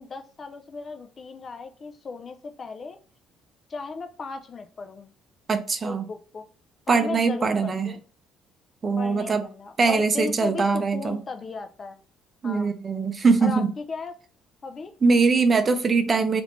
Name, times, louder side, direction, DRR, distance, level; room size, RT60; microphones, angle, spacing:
voice 1, 0.0-3.0 3.7-5.1 5.8-6.4 6.9-8.0 9.0-12.0 12.4-12.7 13.4-14.1 14.6-14.9, left 4 dB, 35° left, 7 dB, 0.4 m, -36 dB
voice 2, 5.5-6.0 6.9-7.9 8.8-9.4 9.8-11.2 12.4-13.7 15.0-16.4, right 4 dB, 30° right, 8 dB, 0.5 m, -22 dB
3.2 x 2.5 x 3.1 m, 0.39 s
cardioid pair, 110°, 0 cm